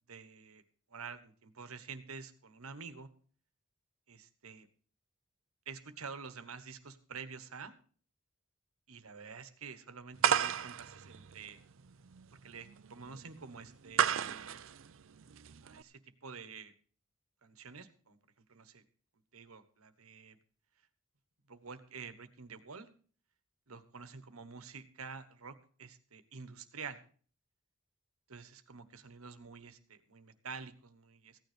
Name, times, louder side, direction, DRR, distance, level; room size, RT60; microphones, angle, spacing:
voice 1, 0.1-0.6 0.9-3.1 4.1-4.7 5.7-7.7 8.9-11.6 12.4-14.6 15.6-16.7 17.4-18.2 18.5-18.8 19.3-20.4 21.5-22.9 23.7-27.0 28.3-31.4, right 5 dB, 90° right, 11 dB, 1.3 m, -48 dB
sound 1, 10.2-15.8, right 8 dB, 65° right, 0.5 m, -33 dB
15.5 x 9.4 x 5.1 m, 0.43 s
head